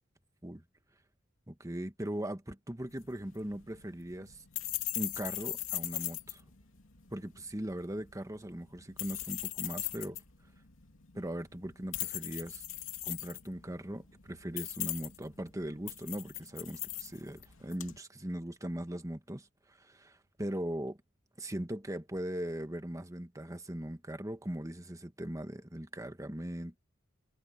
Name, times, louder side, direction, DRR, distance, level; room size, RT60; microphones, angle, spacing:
voice 1, 1.5-4.4 4.9-6.4 7.1-10.2 11.1-12.6 13.1-21.0 21.4-26.8, right 1 dB, 15° right, 1.5 m, -39 dB
keys being shaken, 2.9-18.0, left 14 dB, 85° left, 2.9 m, -40 dB
head